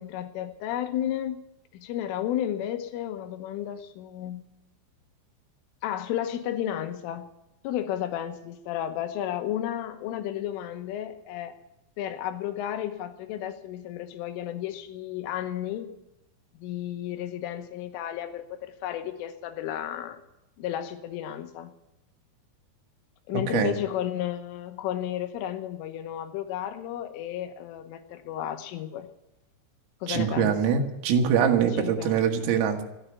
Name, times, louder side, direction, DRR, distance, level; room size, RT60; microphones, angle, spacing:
voice 1, 0.0-1.4 1.7-4.5 5.8-7.3 7.6-11.5 12.0-15.9 16.6-20.2 20.6-21.7 23.3-29.1 30.0-30.5 31.7-32.2, left 11 dB, 80° left, 8 dB, 3.5 m, -32 dB
voice 2, 30.1-32.8, right 7 dB, 90° right, 4 dB, 4.2 m, -23 dB
13.5 x 10.5 x 9.2 m, 0.91 s
omnidirectional pair, 5.8 m